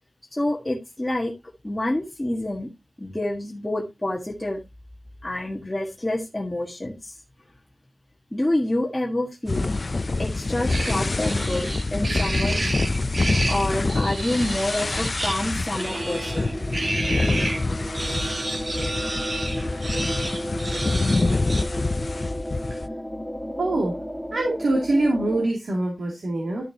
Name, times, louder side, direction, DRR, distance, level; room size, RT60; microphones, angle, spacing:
voice 1, 0.3-1.3 1.6-2.7 3.0-4.6 5.2-7.1 8.3-9.7 10.2-12.7 13.5-16.5, left 1 dB, 20° left, 1.5 m, -27 dB
sound 1, 9.5-22.9, left 3 dB, 45° left, 0.4 m, -26 dB
sound 2, 10.7-17.6 17.9-21.6, right 2 dB, 45° right, 1.9 m, -31 dB
sound 3, 15.7-25.4, equal, ahead, 1.5 m, -33 dB
voice 2, 23.6-23.9 24.3-26.6, right 2 dB, 75° right, 2.6 m, -24 dB
12.0 x 6.5 x 2.8 m
wide cardioid pair, 100°, 0 cm